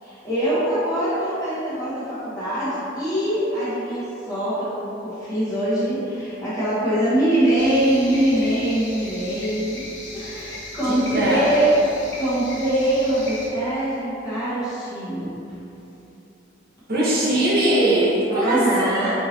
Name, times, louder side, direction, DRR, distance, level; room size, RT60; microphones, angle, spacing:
voice 1, 0.0-9.8 10.1-11.7 12.2-15.3 18.3-19.1, right 1 dB, 20° left, -14 dB, 1.3 m, -23 dB
sound 1, 7.6-13.5, left 2 dB, 80° left, 1.1 m, -37 dB
voice 2, 10.8-11.5 16.9-19.1, right 1 dB, 55° right, -8 dB, 1.2 m, -21 dB
5.5 x 2.9 x 2.9 m, 3.0 s
head